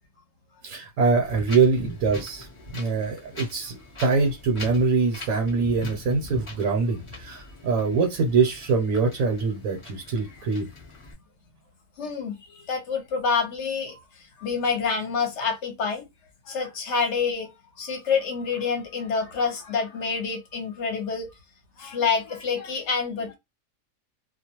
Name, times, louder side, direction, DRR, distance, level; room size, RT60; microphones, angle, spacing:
voice 1, 0.6-2.5 2.7-10.7, right 4 dB, 70° right, 1.0 m, -24 dB
Wind, 1.2-11.1, left 2 dB, 30° left, 0.6 m, -41 dB
voice 2, 12.0-14.0 14.4-16.1 16.5-17.5 17.8-21.3 21.8-23.3, left 5 dB, 60° left, 0.9 m, -27 dB
2.3 x 2.1 x 2.8 m
omnidirectional pair, 1.4 m